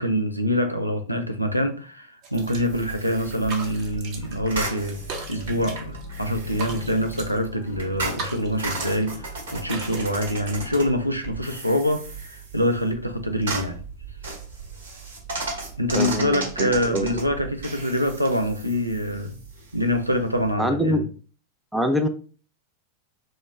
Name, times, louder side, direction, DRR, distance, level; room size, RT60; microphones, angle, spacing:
voice 1, 0.0-5.0 5.3-13.8 15.8-19.4 19.7-21.0, equal, 90° right, 0.4 m, -25 dB
sound 1, 2.2-2.9 3.1-4.5 4.8-6.1 6.4-7.5 7.9-9.1 9.4-10.8, right 3 dB, 40° right, 0.7 m, -38 dB
sound 2, 2.3-20.5, right 3 dB, 65° right, 1.0 m, -36 dB
sound 3, 3.3-11.8, left 6 dB, 60° left, 0.4 m, -44 dB
voice 2, 15.9-17.1 20.6-21.0 21.7-22.1, equal, 5° right, 0.4 m, -24 dB
3.0 x 2.1 x 3.5 m
figure-of-eight pair, 90°, 0 cm